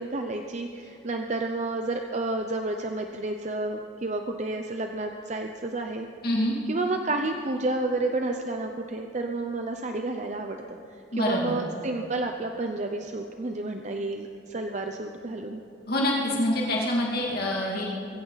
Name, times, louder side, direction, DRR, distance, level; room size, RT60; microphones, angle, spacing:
voice 1, 0.0-6.1 6.7-10.6 11.1-15.6, right 2 dB, 40° right, 4 dB, 0.7 m, -30 dB
voice 2, 6.2-6.6 11.1-11.5 15.9-17.8, left 1 dB, 55° left, -3 dB, 2.7 m, -26 dB
22.0 x 16.0 x 4.1 m, 2.9 s
head